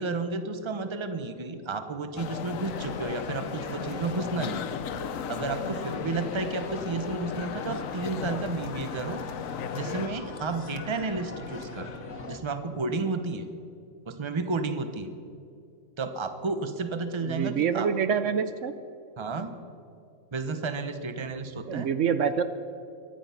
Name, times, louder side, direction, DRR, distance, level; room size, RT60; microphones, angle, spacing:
voice 1, 0.0-4.8 5.3-9.2 9.7-11.9 12.3-13.5 14.1-15.1 16.0-17.9 19.2-19.6 20.3-21.9, right 3 dB, 25° right, 9 dB, 0.9 m, -32 dB
sound 1, 2.2-10.1, left 8 dB, 80° left, 1.1 m, -36 dB
sound 2, 2.6-12.4, left 3 dB, 65° left, 1.6 m, -40 dB
voice 2, 17.3-18.7 21.7-22.4, right 7 dB, 70° right, 11 dB, 1.0 m, -26 dB
23.5 x 10.0 x 5.8 m, 2.5 s
omnidirectional pair, 1.4 m